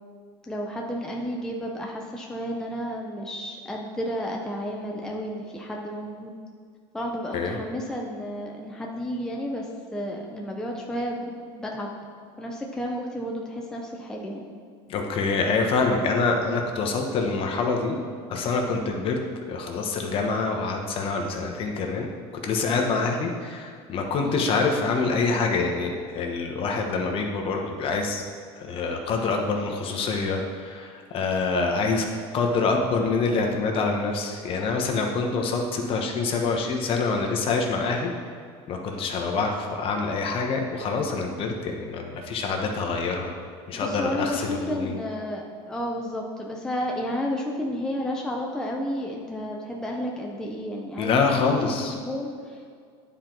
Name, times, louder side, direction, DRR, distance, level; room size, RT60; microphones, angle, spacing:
voice 1, 0.5-6.3 6.9-11.9 12.4-14.5 24.2-24.5 35.8-36.2 43.7-51.6 51.9-52.7, equal, 5° left, -1 dB, 0.6 m, -32 dB
voice 2, 14.9-18.0 18.3-19.2 19.5-22.1 22.4-28.2 28.6-32.0 32.3-38.1 38.7-43.3 43.7-45.0 51.0-51.9, left 4 dB, 40° left, 2 dB, 1.0 m, -26 dB
10.0 x 4.5 x 3.9 m, 2.1 s
supercardioid pair, 130°, 14 cm